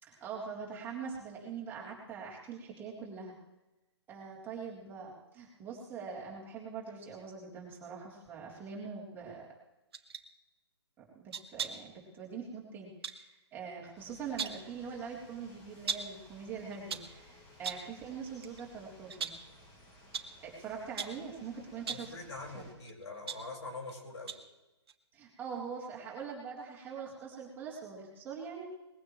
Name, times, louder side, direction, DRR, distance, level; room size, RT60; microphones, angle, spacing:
voice 1, 0.0-3.4 4.1-9.5 11.0-19.3 20.4-22.1 22.5-22.7 25.1-28.6, right 6 dB, 15° right, -5 dB, 3.6 m, -43 dB
sound 1, 9.9-10.3 11.3-11.9 13.0-13.2 14.1-14.7 15.9-16.2 16.7-17.2 17.6-17.9 18.4-18.6 19.1-19.5 20.1-20.4 21.0-21.3 21.8-22.1 22.9-23.9 24.3-24.5 24.9-25.0, right 6 dB, 65° right, 1.3 m, -39 dB
sound 2, 14.0-22.7, left 1 dB, 25° left, 4.4 m, -58 dB
voice 2, 21.9-24.3, left 3 dB, 75° left, 0 dB, 5.4 m, -44 dB
21.0 x 15.5 x 3.2 m, 1.0 s
hypercardioid pair, 135°, 14 cm